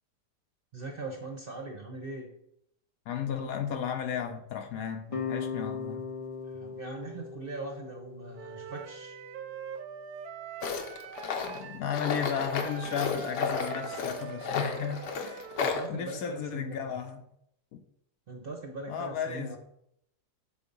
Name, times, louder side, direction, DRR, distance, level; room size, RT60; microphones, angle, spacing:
voice 1, 0.7-2.3 6.4-9.2 15.6-17.0 18.3-19.6, right 3 dB, 45° right, 0.8 m, -41 dB
voice 2, 3.1-6.0 11.4-15.5 15.9-17.3 17.7-17.8 18.9-19.6, left 8 dB, 65° left, 1.0 m, -34 dB
sound 1, 5.1-10.2, left 5 dB, 50° left, 0.4 m, -39 dB
Wind instrument woodwind instrument, 8.3-15.8, right 9 dB, 70° right, 1.0 m, -43 dB
Tools, 10.6-15.9, left 6 dB, 85° left, 1.5 m, -33 dB
7.1 x 3.9 x 5.3 m
omnidirectional pair, 1.8 m